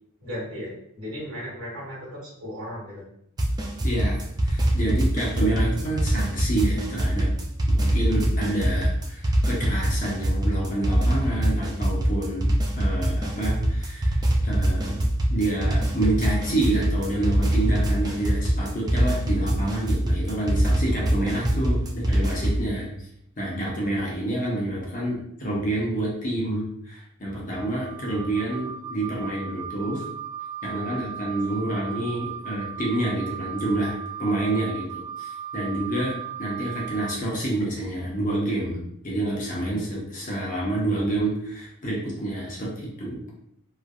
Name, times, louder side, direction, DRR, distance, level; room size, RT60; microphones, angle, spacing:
voice 1, 0.2-3.0 31.8-32.0, equal, 80° right, -6 dB, 1.3 m, -36 dB
sound 1, 3.4-22.6, right 1 dB, 20° right, 0.3 m, -23 dB
voice 2, 3.8-7.3 7.7-15.0 15.3-22.9 23.4-30.0 30.6-43.2, right 1 dB, 40° left, -4 dB, 0.8 m, -28 dB
Wind instrument woodwind instrument, 27.5-37.2, right 8 dB, 60° right, 0.8 m, -37 dB
3.2 x 2.4 x 2.3 m, 0.73 s
head